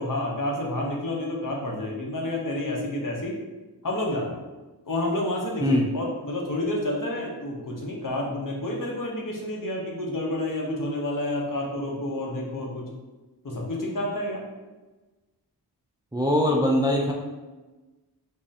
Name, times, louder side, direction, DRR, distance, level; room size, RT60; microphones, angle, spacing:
voice 1, 0.0-3.4 3.8-4.3 4.8-12.8 13.4-14.4, left 1 dB, 50° left, -1 dB, 0.9 m, -29 dB
voice 2, 16.1-17.1, left 1 dB, 10° right, -1 dB, 0.4 m, -22 dB
3.4 x 3.1 x 2.8 m, 1.2 s
wide cardioid pair, 60°, 43 cm